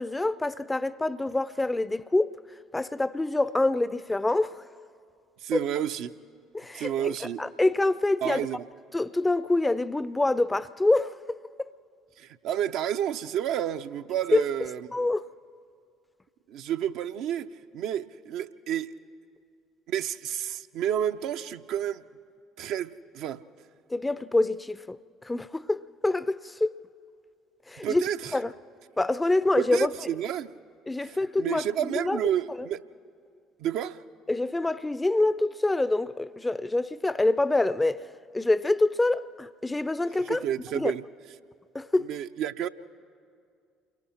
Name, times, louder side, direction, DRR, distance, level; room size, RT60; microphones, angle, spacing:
voice 1, 0.0-2.4 2.7-4.6 5.5-5.6 6.5-7.1 7.4-8.4 8.9-11.7 14.3-14.4 14.9-15.2 23.9-25.0 25.3-26.7 27.7-28.0 28.3-28.5 29.0-29.9 30.9-32.2 34.3-38.0 38.3-40.4 40.7-40.9 41.7-42.1, left 2 dB, 15° left, 0.5 m, -26 dB
voice 2, 5.4-6.1 6.7-7.4 8.2-8.6 12.2-14.9 16.5-18.9 19.9-22.0 22.6-23.4 27.8-28.3 29.6-30.5 31.0-32.9 33.6-34.0 40.2-41.0 42.1-42.7, right 10 dB, 60° right, 0.5 m, -30 dB
28.5 x 22.5 x 4.4 m
figure-of-eight pair, 55°, 0 cm